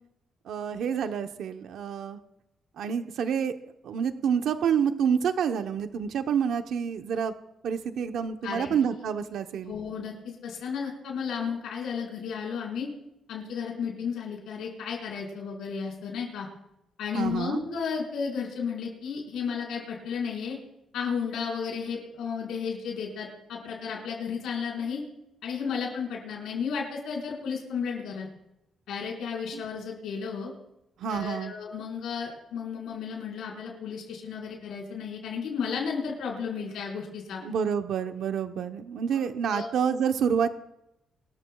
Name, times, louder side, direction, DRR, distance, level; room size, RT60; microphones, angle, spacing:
voice 1, 0.4-2.2 2.8-3.5 3.8-7.3 7.6-9.7 17.1-17.6 29.5-29.6 31.0-31.5 37.4-40.5, right 7 dB, 75° right, 7 dB, 0.9 m, -28 dB
voice 2, 8.4-8.7 9.7-12.9 13.3-16.5 17.0-20.6 20.9-25.0 25.4-28.3 28.9-30.5 31.1-37.4 39.1-39.2 39.5-39.7, left 6 dB, 90° left, -2 dB, 4.9 m, -33 dB
25.0 x 13.5 x 2.4 m, 0.85 s
cardioid pair, 145°, 0 cm